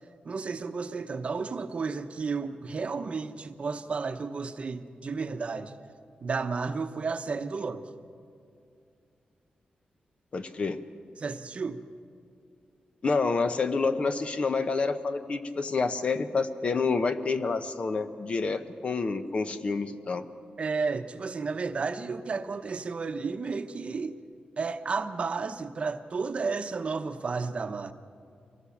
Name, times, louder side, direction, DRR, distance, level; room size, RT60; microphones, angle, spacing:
voice 1, 0.2-5.7 6.2-7.8 11.2-11.8 20.6-24.2 24.6-27.9, right 4 dB, 45° right, 8 dB, 0.9 m, -32 dB
voice 2, 10.3-10.8 13.0-20.3, left 4 dB, 45° left, 9 dB, 0.9 m, -28 dB
24.0 x 18.0 x 7.2 m, 2.4 s
wide cardioid pair, 125°, 3 cm